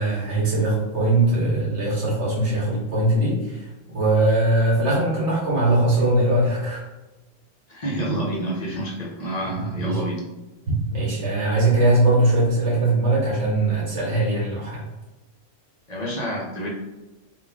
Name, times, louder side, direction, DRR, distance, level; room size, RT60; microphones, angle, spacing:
voice 1, 0.0-3.6 3.9-6.8 9.5-10.0 10.9-14.8, right 2 dB, 60° right, -5 dB, 1.4 m, -21 dB
voice 2, 7.7-10.2 15.9-16.7, right 1 dB, 40° left, -3 dB, 0.7 m, -28 dB
3.6 x 2.4 x 3.4 m, 1.1 s
omnidirectional pair, 1.3 m